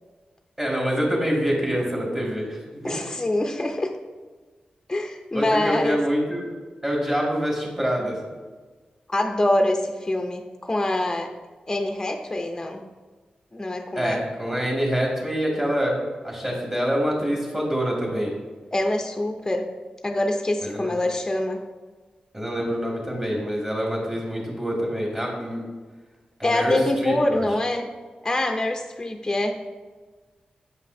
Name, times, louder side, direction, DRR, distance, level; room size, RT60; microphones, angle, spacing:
voice 1, 0.6-3.0 5.3-6.4 6.8-8.2 14.0-15.9 16.2-18.4 20.6-21.0 22.3-25.6 26.4-27.4, equal, 15° right, -2 dB, 2.0 m, -26 dB
voice 2, 2.8-3.9 4.9-6.0 9.1-11.3 11.7-12.9 13.5-14.2 18.7-19.7 20.0-21.6 26.4-27.9 28.2-29.6, left 1 dB, 20° left, 4 dB, 0.5 m, -25 dB
8.4 x 5.3 x 2.6 m, 1.3 s
wide cardioid pair, 85°, 3 cm